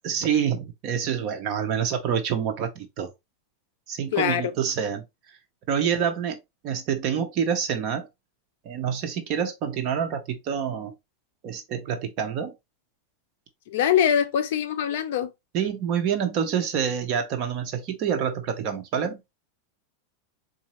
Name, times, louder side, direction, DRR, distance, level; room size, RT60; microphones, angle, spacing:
voice 1, 0.0-3.1 3.9-5.0 5.7-6.4 6.6-8.1 8.6-10.9 11.4-12.5 15.5-19.2, right 8 dB, 35° right, 0.8 m, -27 dB
voice 2, 4.1-4.4 13.7-15.3, left 9 dB, 60° left, 0.5 m, -23 dB
4.0 x 2.6 x 2.9 m
supercardioid pair, 170°, 0 cm